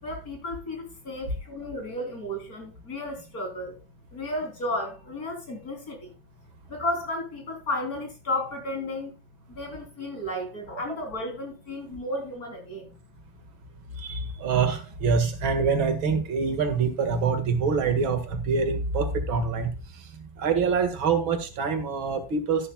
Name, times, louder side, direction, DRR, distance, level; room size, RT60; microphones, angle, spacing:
voice 1, 0.0-3.7 4.1-6.1 6.7-9.1 9.5-12.9, left 1 dB, 45° left, 3.9 m, -33 dB
voice 2, 14.0-19.7 20.4-22.7, right 5 dB, 90° right, 2.6 m, -25 dB
12.5 x 11.5 x 2.3 m
omnidirectional pair, 2.1 m